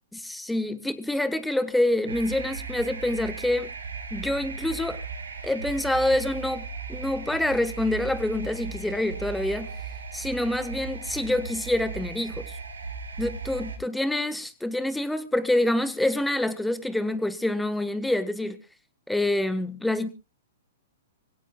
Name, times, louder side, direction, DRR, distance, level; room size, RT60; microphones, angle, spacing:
voice 1, 0.1-3.7 4.1-5.0 5.4-9.7 10.1-12.5 13.2-18.6 19.1-20.1, left 1 dB, 5° left, 1.4 m, -26 dB
sound 1, 2.1-13.8, right 5 dB, 85° right, 3.8 m, -37 dB
25.5 x 16.5 x 2.3 m
hypercardioid pair, 120°, 0 cm